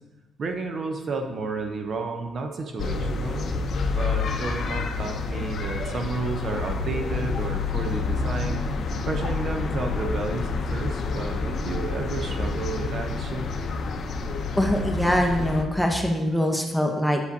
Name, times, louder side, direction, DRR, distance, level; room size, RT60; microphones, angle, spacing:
voice 1, 0.4-3.5 3.9-8.7 9.1-13.5, right 3 dB, 55° right, 5 dB, 0.6 m, -31 dB
sound 1, 2.8-15.6, left 4 dB, 60° left, 0.5 m, -28 dB
voice 2, 14.6-17.2, equal, ahead, 2 dB, 0.7 m, -23 dB
8.0 x 4.9 x 2.7 m, 1.1 s
cardioid pair, 90°, 0 cm